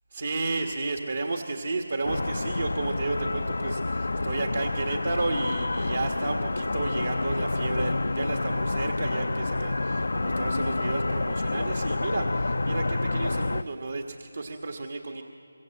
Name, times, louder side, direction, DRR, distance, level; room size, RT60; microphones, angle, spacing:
voice 1, 0.1-15.2, right 3 dB, 65° right, 4 dB, 1.6 m, -32 dB
sound 1, 2.0-13.6, left 2 dB, 70° left, 0.5 m, -28 dB
24.5 x 22.0 x 7.8 m, 2.4 s
figure-of-eight pair, 160°, 0 cm